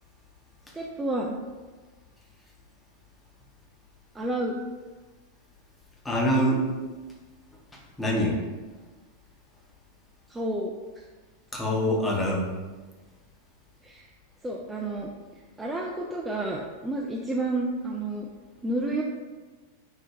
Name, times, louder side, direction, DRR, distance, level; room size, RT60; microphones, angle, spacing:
voice 1, 0.7-1.3 4.1-4.6 8.2-8.3 10.3-10.7 13.8-14.1 14.4-15.1 15.6-18.3 18.6-19.0, right 2 dB, 10° right, -2 dB, 0.3 m, -30 dB
voice 2, 6.0-6.7 7.7-8.4 11.5-12.5, equal, 10° left, -2 dB, 0.7 m, -25 dB
4.4 x 2.2 x 3.4 m, 1.3 s
figure-of-eight pair, 90°, 0 cm